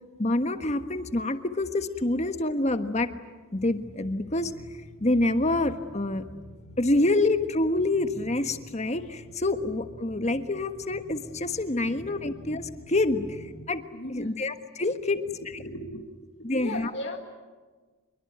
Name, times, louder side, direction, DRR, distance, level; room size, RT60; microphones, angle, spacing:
voice 1, 0.2-3.1 3.5-4.5 5.0-6.2 6.8-13.8 14.1-15.2 16.4-16.9, left 2 dB, 35° left, 9 dB, 1.4 m, -27 dB
sound 1, 3.5-13.6, equal, 85° left, 2.5 m, -47 dB
voice 2, 13.9-14.4 15.6-17.2, left 1 dB, 60° left, 2 dB, 1.9 m, -37 dB
26.0 x 23.0 x 9.4 m, 1.3 s
head